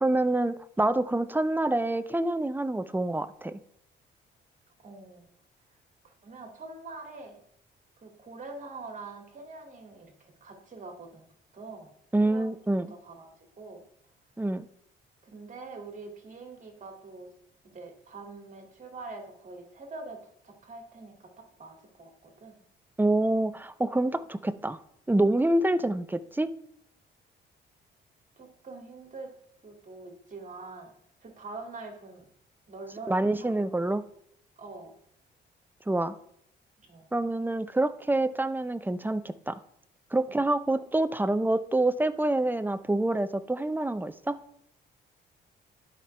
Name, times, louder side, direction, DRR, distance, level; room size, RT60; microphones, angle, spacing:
voice 1, 0.0-3.6 12.1-12.9 14.4-14.7 23.0-24.8 25.1-26.5 33.1-34.0 35.9-36.1 37.1-39.6 40.1-44.4, right 2 dB, 10° right, 12 dB, 0.5 m, -26 dB
voice 2, 4.8-5.2 6.0-7.4 8.0-11.9 12.2-12.5 12.9-13.3 13.6-13.8 15.2-17.3 17.7-22.6 25.8-25.9 28.4-29.3 29.6-30.9 31.2-32.3 32.7-33.7 34.6-34.9 36.9-37.1 40.3-40.5, right 3 dB, 40° right, 3 dB, 2.3 m, -44 dB
11.5 x 5.3 x 3.3 m, 0.72 s
cardioid pair, 90°, 20 cm